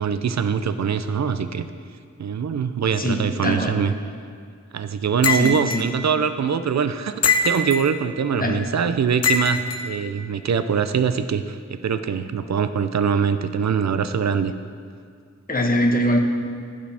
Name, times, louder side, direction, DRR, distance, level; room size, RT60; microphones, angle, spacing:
voice 1, 0.0-1.7 2.2-3.9 4.7-11.6 11.8-14.5, right 6 dB, 65° right, 11 dB, 0.5 m, -23 dB
voice 2, 3.0-3.7 5.3-5.9 8.4-8.6 15.5-16.2, equal, 30° left, 2 dB, 1.0 m, -22 dB
sound 1, 5.2-5.8 7.2-7.9 9.2-9.8, left 4 dB, 55° left, 0.6 m, -22 dB
15.0 x 5.1 x 3.5 m, 2.3 s
wide cardioid pair, 65°, 29 cm